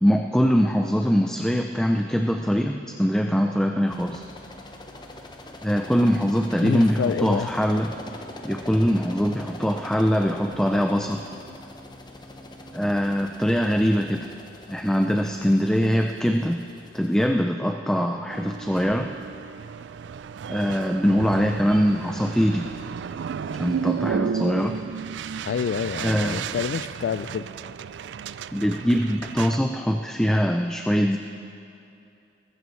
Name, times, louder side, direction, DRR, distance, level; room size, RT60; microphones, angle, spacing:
voice 1, 0.0-4.2 5.6-7.9 8.4-11.2 12.7-14.3 14.7-16.6 16.9-19.1 20.5-22.7 23.5-24.8 26.0-26.4 28.5-31.2, equal, 5° left, 4 dB, 0.4 m, -22 dB
sound 1, 3.9-17.3, left 1 dB, 25° left, 0.9 m, -42 dB
voice 2, 6.6-7.5 25.5-27.5, left 7 dB, 85° left, 11 dB, 0.3 m, -27 dB
sound 2, 18.3-29.6, right 7 dB, 85° right, 0.3 m, -33 dB
21.0 x 14.0 x 3.2 m, 2.7 s
head